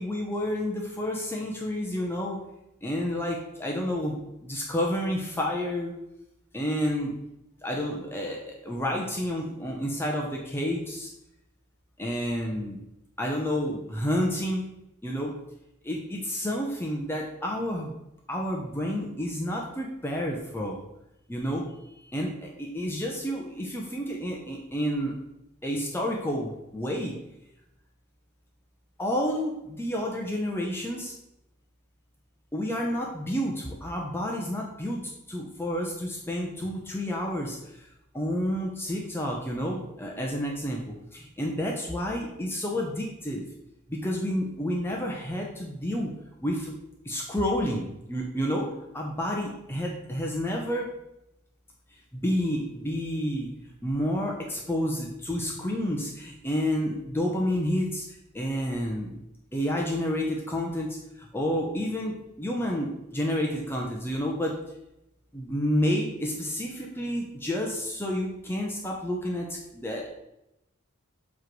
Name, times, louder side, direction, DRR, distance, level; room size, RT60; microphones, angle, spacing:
voice 1, 0.0-2.4 2.8-5.9 6.5-7.1 7.6-11.1 12.0-12.8 13.2-14.6 15.0-15.3 15.8-17.9 18.3-20.8 21.3-21.6 22.0-25.1 25.6-27.1 29.0-31.1 32.5-35.0 35.3-37.9 38.1-43.4 43.9-46.1 46.4-46.7 47.0-50.9 52.1-53.5 53.8-58.0 58.3-59.2 59.5-64.6 65.3-69.5 69.7-70.1, equal, 10° left, -1 dB, 0.6 m, -30 dB
7.3 x 3.1 x 4.6 m, 0.88 s
head